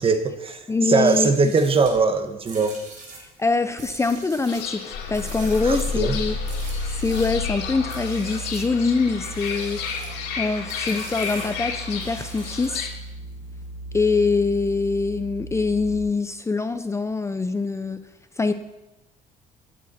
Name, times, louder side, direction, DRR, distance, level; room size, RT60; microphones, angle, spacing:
voice 1, 0.0-0.6 0.9-2.8 5.6-6.2, right 4 dB, 35° right, 9 dB, 1.3 m, -21 dB
voice 2, 0.7-1.3 3.2-6.3 6.6-9.8 10.4-12.9 13.9-18.0 18.4-18.5, left 4 dB, 15° left, 10 dB, 0.6 m, -24 dB
sound 1, 0.9-7.4 7.9-8.7 9.2-10.2 10.7-13.1, right 3 dB, 50° right, 4.1 m, -42 dB
Fowl / Bird, 4.5-12.9, left 6 dB, 85° left, 2.5 m, -33 dB
sound 2, 4.9-16.0, left 2 dB, 70° left, 3.3 m, -34 dB
16.0 x 9.7 x 4.3 m, 0.97 s
cardioid pair, 110°, 17 cm